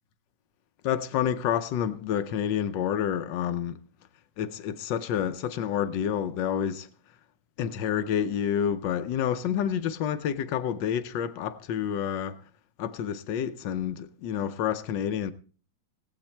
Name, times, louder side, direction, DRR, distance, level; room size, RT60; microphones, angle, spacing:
voice 1, 0.8-3.8 4.4-6.9 7.6-12.4 12.8-15.3, left 9 dB, 75° left, 1.4 m, -29 dB
18.0 x 8.0 x 4.4 m
omnidirectional pair, 2.0 m